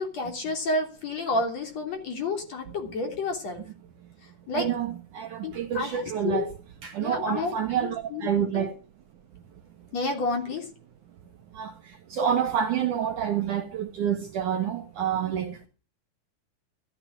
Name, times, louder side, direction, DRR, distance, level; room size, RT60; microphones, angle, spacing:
voice 1, 0.0-3.6 4.5-4.7 5.4-6.5 7.0-8.3 8.5-8.7 9.9-10.7, left 3 dB, 40° left, 4.1 m, -30 dB
voice 2, 4.5-6.5 6.8-8.7 11.5-11.7 12.1-15.7, right 8 dB, 60° right, 2.3 m, -28 dB
13.5 x 13.5 x 6.0 m
omnidirectional pair, 4.7 m